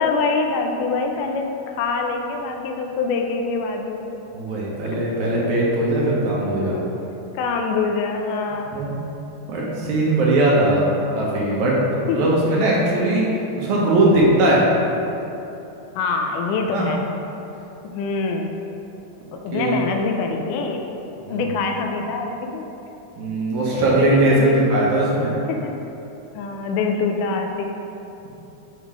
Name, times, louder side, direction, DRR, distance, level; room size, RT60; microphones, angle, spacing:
voice 1, 0.0-4.1 6.7-6.8 7.4-8.8 12.1-12.2 16.0-17.0 17.8-18.6 19.3-20.9 21.3-22.7 23.7-24.7 25.5-25.7 26.4-27.7, left 4 dB, 85° left, 3 dB, 2.1 m, -25 dB
voice 2, 4.3-6.8 8.7-8.9 9.5-10.9 11.2-13.3 13.6-14.6 16.7-16.9 19.5-19.8 21.2-21.5 23.2-25.4, right 1 dB, 70° right, -4 dB, 2.2 m, -19 dB
7.3 x 3.6 x 4.8 m, 3.0 s
omnidirectional pair, 3.7 m